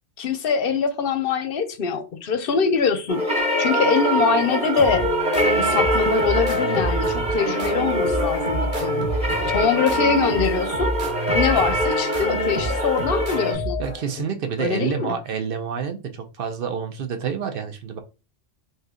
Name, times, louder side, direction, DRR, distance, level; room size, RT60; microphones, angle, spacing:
voice 1, 0.2-5.1 5.6-9.0 9.5-10.9 11.3-13.8 14.6-15.1, left 6 dB, 60° left, 0.7 m, -23 dB
sound 1, 3.1-13.5, equal, 5° right, 0.8 m, -24 dB
sound 2, 4.8-14.3, right 1 dB, 30° right, 1.0 m, -29 dB
voice 2, 13.8-18.0, right 7 dB, 60° right, 0.8 m, -28 dB
3.2 x 2.7 x 3.7 m
omnidirectional pair, 1.2 m